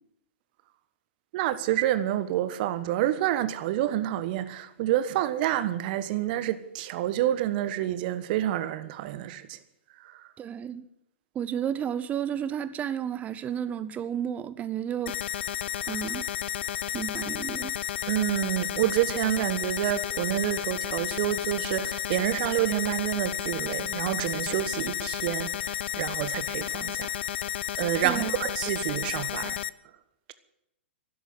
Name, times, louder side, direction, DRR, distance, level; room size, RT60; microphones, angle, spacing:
voice 1, 1.3-9.6 10.0-10.3 18.1-27.2 27.8-29.6, right 13 dB, 45° right, 1.3 m, -28 dB
voice 2, 10.4-10.9 11.3-15.2 15.9-16.3 16.9-17.8 28.0-28.4, right 9 dB, 20° right, 0.8 m, -32 dB
sound 1, 15.1-29.7, left 11 dB, 60° left, 0.6 m, -32 dB
13.0 x 11.0 x 9.5 m
hypercardioid pair, 115°, 7 cm